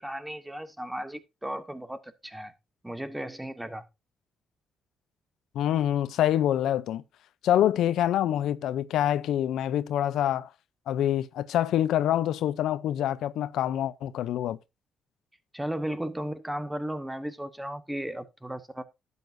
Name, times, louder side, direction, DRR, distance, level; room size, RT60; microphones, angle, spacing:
voice 1, 0.0-2.5 2.8-3.8 15.5-18.8, right 1 dB, 5° right, 1.1 m, -35 dB
voice 2, 5.5-7.0 7.4-10.5 10.9-14.6, left 11 dB, 80° left, 0.6 m, -26 dB
11.5 x 8.3 x 2.6 m
cardioid pair, 90°, 0 cm